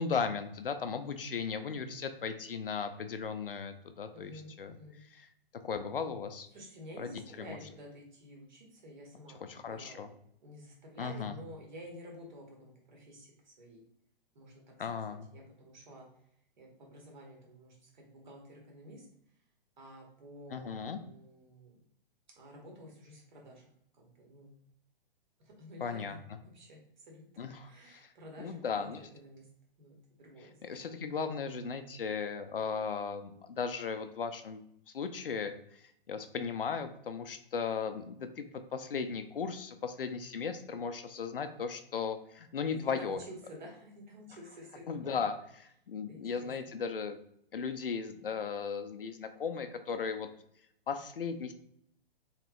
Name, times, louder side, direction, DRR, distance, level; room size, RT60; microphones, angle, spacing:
voice 1, 0.0-4.3 4.6-4.7 5.1-5.3 5.6-6.5 7.0-7.6 9.5-10.1 11.0-11.4 14.8-15.3 20.5-21.0 25.8-26.2 27.4-28.1 28.4-29.0 30.4-34.6 34.9-43.2 44.9-45.4 45.6-47.2 47.5-50.3 50.9-51.5, left 6 dB, 70° left, 9 dB, 0.5 m, -36 dB
voice 2, 4.1-5.0 6.5-10.1 10.4-13.8 14.3-14.6 15.1-16.1 16.6-19.1 19.8-21.8 22.4-23.7 24.0-24.5 25.4-27.3 27.6-29.5 29.8-31.0 42.8-45.2 46.1-46.5, equal, 50° right, 0 dB, 1.2 m, -51 dB
3.2 x 2.9 x 2.4 m, 0.71 s
figure-of-eight pair, 115°, 29 cm